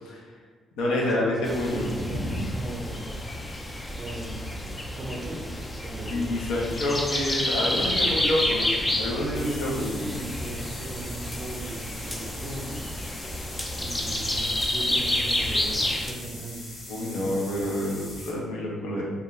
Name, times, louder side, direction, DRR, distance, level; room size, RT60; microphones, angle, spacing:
voice 1, 0.0-0.3 0.8-2.5 6.1-9.9 16.9-19.0, left 1 dB, 90° left, -3 dB, 0.6 m, -28 dB
voice 2, 0.8-3.3 4.0-4.4 4.9-6.4 7.6-8.5 9.3-12.9 13.7-16.7 17.0-17.5, right 2 dB, 35° right, -2 dB, 0.5 m, -38 dB
sound 1, 1.4-16.1, left 1 dB, 20° left, 0.3 m, -30 dB
sound 2, 9.3-18.3, left 2 dB, 60° left, 0.9 m, -42 dB
2.3 x 2.3 x 3.0 m, 1.5 s
cardioid pair, 90°, 0 cm